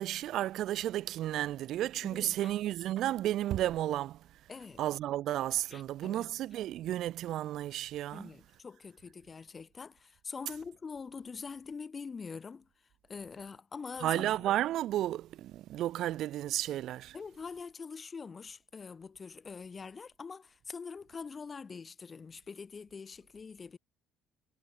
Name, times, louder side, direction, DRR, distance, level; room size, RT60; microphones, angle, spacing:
voice 1, 0.0-4.4 4.8-8.3 14.0-17.2, right 13 dB, 60° right, 1.9 m, -33 dB
voice 2, 2.0-2.5 4.5-4.8 5.7-6.3 8.1-12.7 13.1-14.3 17.1-23.8, left 5 dB, 25° left, 2.0 m, -44 dB
cardioid pair, 130°, 0 cm